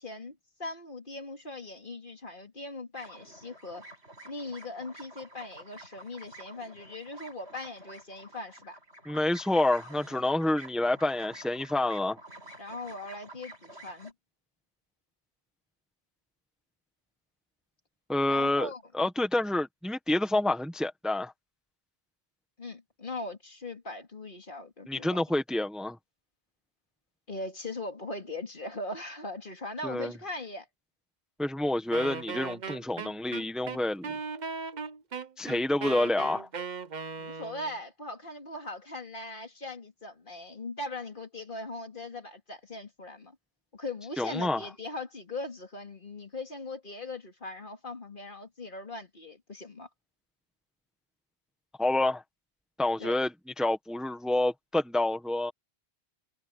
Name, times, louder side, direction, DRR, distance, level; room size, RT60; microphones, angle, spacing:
voice 1, 0.0-3.9 4.2-8.8 12.6-14.1 18.3-18.8 22.6-25.2 27.3-30.7 37.2-43.4 43.7-49.9 53.0-53.2, left 2 dB, 50° left, 2.7 m, -40 dB
sound 1, 2.9-14.1, right 2 dB, 80° right, 7.1 m, -50 dB
voice 2, 9.1-12.2 18.1-18.7 18.9-21.3 24.9-26.0 29.8-30.1 31.4-34.1 35.4-36.5 44.2-44.6 51.8-52.2 52.8-55.5, left 1 dB, ahead, 1.5 m, -28 dB
Wind instrument woodwind instrument, 31.9-37.7, right 5 dB, 45° right, 1.0 m, -38 dB
omnidirectional pair, 1.1 m